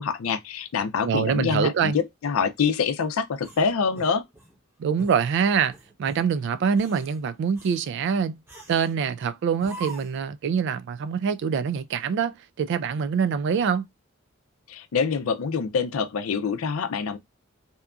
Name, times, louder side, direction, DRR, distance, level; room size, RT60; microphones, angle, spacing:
voice 1, 0.0-4.2 14.7-17.2, left 5 dB, 85° left, 0.4 m, -25 dB
voice 2, 1.0-2.0 4.8-8.4 8.7-13.9, right 6 dB, 60° right, 0.3 m, -25 dB
sound 1, 3.4-4.6 5.0-5.2 5.7-6.2 6.7-7.2 7.6-7.9 8.5-9.0 9.6-10.3, right 2 dB, 10° right, 0.7 m, -43 dB
2.7 x 2.4 x 2.2 m
head